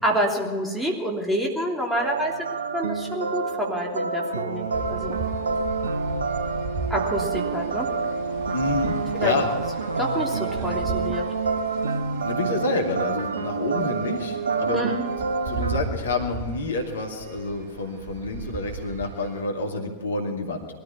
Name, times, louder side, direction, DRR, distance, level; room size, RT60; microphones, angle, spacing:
voice 1, 0.0-2.3 2.7-5.2 6.9-7.9 9.1-9.3 10.0-11.2 13.7-13.9 14.7-15.0, equal, 5° right, -1 dB, 3.1 m, -28 dB
sound 1, 2.0-15.8, right 4 dB, 70° right, 0.7 m, -28 dB
sound 2, 4.7-19.4, right 4 dB, 45° right, 1.9 m, -37 dB
voice 2, 8.5-9.5 12.2-14.8 15.5-20.7, left 3 dB, 70° left, 2 dB, 2.2 m, -28 dB
21.5 x 13.0 x 4.8 m, 1.5 s
figure-of-eight pair, 90°, 0 cm